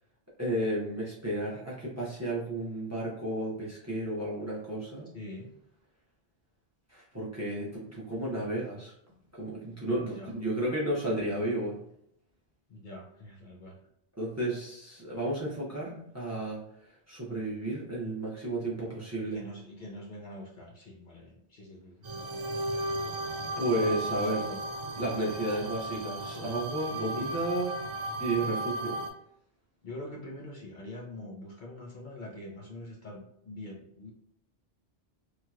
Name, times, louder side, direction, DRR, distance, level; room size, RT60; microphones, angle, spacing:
voice 1, 0.4-5.1 6.9-8.9 9.3-11.8 14.2-19.4 23.6-24.4 25.0-27.7 28.2-29.0, right 1 dB, 15° right, -6 dB, 0.7 m, -32 dB
voice 2, 5.1-5.5 10.0-10.3 12.7-13.8 19.2-22.1 23.7-24.6 26.9-27.6 29.8-34.1, left 1 dB, 55° left, -2 dB, 0.7 m, -44 dB
sound 1, 22.0-29.1, right 1 dB, 55° right, 0.5 m, -35 dB
3.0 x 2.8 x 2.3 m, 0.73 s
omnidirectional pair, 1.1 m